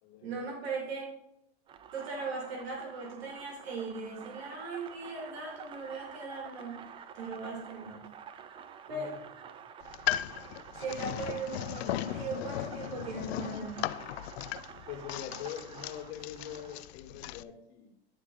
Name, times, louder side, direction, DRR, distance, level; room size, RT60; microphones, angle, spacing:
voice 1, 0.2-1.1 1.9-6.8 7.1-8.0 8.9-9.1 10.7-13.9, right 4 dB, 75° right, 0 dB, 2.6 m, -38 dB
sound 1, 1.7-16.9, right 7 dB, 15° right, 0.3 m, -49 dB
voice 2, 8.9-9.2 14.9-17.9, left 10 dB, 50° left, 1 dB, 2.3 m, -43 dB
sound 2, 9.8-17.4, left 14 dB, 80° left, 0.5 m, -37 dB
11.0 x 4.0 x 4.7 m, 0.80 s
supercardioid pair, 125°, 31 cm